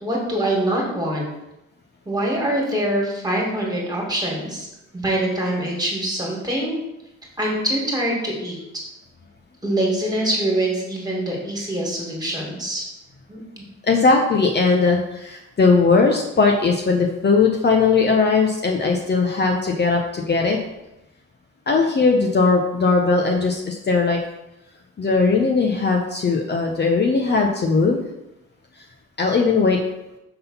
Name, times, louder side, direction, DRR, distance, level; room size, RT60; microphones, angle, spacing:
voice 1, 0.0-1.3 2.1-4.7 4.9-6.7 7.4-8.6 9.6-12.8 13.3-13.4, right 1 dB, 15° right, -2 dB, 2.3 m, -24 dB
voice 2, 13.9-20.6 21.7-24.2 25.0-28.0 29.2-29.8, left 4 dB, 35° left, 1 dB, 0.8 m, -19 dB
5.9 x 3.8 x 5.6 m, 0.93 s
cardioid pair, 90°, 30 cm